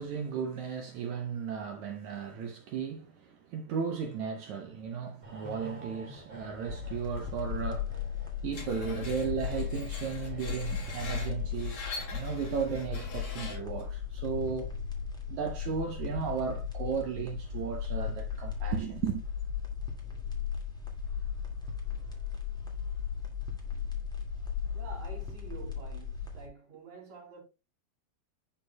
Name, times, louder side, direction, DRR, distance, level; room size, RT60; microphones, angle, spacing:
voice 1, 0.0-8.0 8.4-14.8 15.3-19.2, right 7 dB, 70° right, 1.9 m, -35 dB
sound 1, 5.2-13.8 14.0-14.2, equal, 15° right, 1.2 m, -51 dB
sound 2, 6.7-26.5, left 7 dB, ahead, 0.9 m, -36 dB
Screech, 8.5-13.8, left 4 dB, 50° left, 3.9 m, -44 dB
voice 2, 24.7-27.4, right 5 dB, 55° right, 4.0 m, -48 dB
11.5 x 4.5 x 2.2 m
omnidirectional pair, 4.0 m